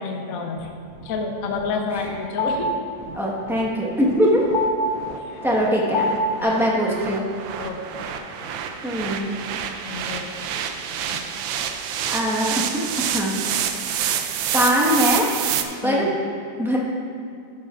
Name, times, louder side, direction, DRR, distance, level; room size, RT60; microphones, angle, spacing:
voice 1, 0.0-2.9 5.2-5.4 6.4-6.6 7.6-7.8 8.4-8.5 9.8-10.4 11.1-11.2 15.8-16.2, left 4 dB, 55° left, 3 dB, 1.1 m, -30 dB
sound 1, 0.6-15.6, right 8 dB, 85° right, 1.4 m, -29 dB
sound 2, 1.1-6.4, left 1 dB, 85° left, 1.5 m, -28 dB
voice 2, 3.1-4.4 5.4-6.1 6.4-7.3 8.8-9.3 12.1-12.6 13.1-13.4 14.5-15.3 15.8-16.1 16.6-16.8, equal, ahead, -4 dB, 1.1 m, -21 dB
12.5 x 9.4 x 2.5 m, 2.5 s
omnidirectional pair, 2.1 m